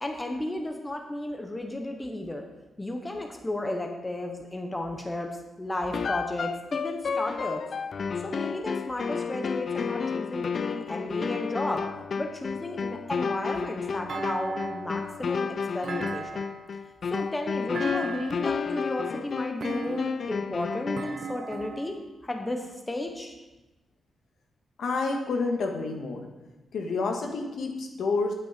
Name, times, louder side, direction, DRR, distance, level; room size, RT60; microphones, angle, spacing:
voice 1, 0.0-2.4 2.8-7.6 8.2-11.8 12.2-16.5 17.1-22.0 22.2-23.3, left 1 dB, 15° left, 3 dB, 0.9 m, -33 dB
sound 1, 5.9-21.2, left 6 dB, 45° left, 0.4 m, -31 dB
Thump thud, 14.1-15.0 15.8-16.8 17.7-18.5 19.6-20.3 21.0-22.0, right 4 dB, 45° right, 0.9 m, -36 dB
voice 2, 24.8-26.3 26.7-28.3, left 3 dB, 70° left, 2 dB, 1.5 m, -29 dB
9.1 x 8.5 x 5.1 m, 1.1 s
wide cardioid pair, 140°, 0 cm